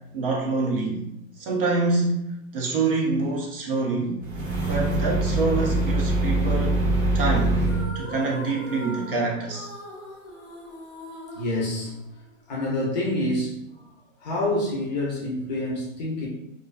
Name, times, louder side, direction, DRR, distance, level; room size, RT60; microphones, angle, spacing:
voice 1, 0.1-1.0 1.4-4.2 4.7-6.8 7.1-7.6 7.9-9.7, right 3 dB, 45° right, -1 dB, 0.5 m, -26 dB
sound 1, 4.2-7.9, right 2 dB, 90° right, 1.2 m, -23 dB
sound 2, 7.6-12.4, equal, 10° right, 0.7 m, -41 dB
voice 2, 11.4-11.9 12.5-13.9 14.2-16.3, left 1 dB, 35° left, -3 dB, 0.5 m, -27 dB
2.4 x 2.2 x 2.3 m, 0.85 s
hypercardioid pair, 160°, 41 cm